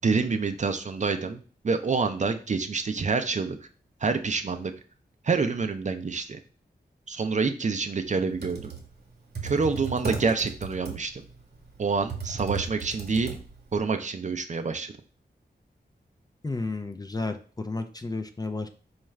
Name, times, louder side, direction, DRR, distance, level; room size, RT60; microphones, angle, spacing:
voice 1, 0.0-3.6 4.0-4.7 5.2-6.4 7.1-8.7 9.4-11.2 11.8-13.3 13.7-14.9, right 4 dB, 45° right, 7 dB, 0.4 m, -27 dB
Computer keyboard, 8.2-13.8, right 5 dB, 65° right, 1.0 m, -36 dB
voice 2, 16.4-18.7, left 3 dB, 20° left, 7 dB, 0.4 m, -32 dB
4.3 x 2.4 x 3.2 m, 0.41 s
wide cardioid pair, 70°, 18 cm